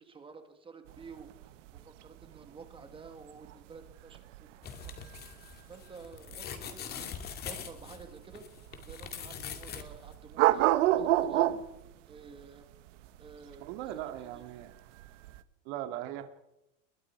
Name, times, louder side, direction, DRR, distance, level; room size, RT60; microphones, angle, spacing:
voice 1, 0.0-1.4 1.7-5.4 5.7-7.2 7.4-8.5 8.8-11.5 12.1-12.7 13.2-13.8 14.3-14.4, right 4 dB, 15° right, 6 dB, 2.0 m, -51 dB
sound 1, 0.9-15.4, right 14 dB, 70° right, 1.5 m, -31 dB
sound 2, 4.6-9.8 10.1-10.2, left 8 dB, 25° left, 2.4 m, -43 dB
voice 2, 13.6-14.7 15.6-16.3, right 12 dB, 55° right, 7 dB, 2.6 m, -39 dB
30.0 x 22.0 x 4.8 m, 0.91 s
supercardioid pair, 165°, 39 cm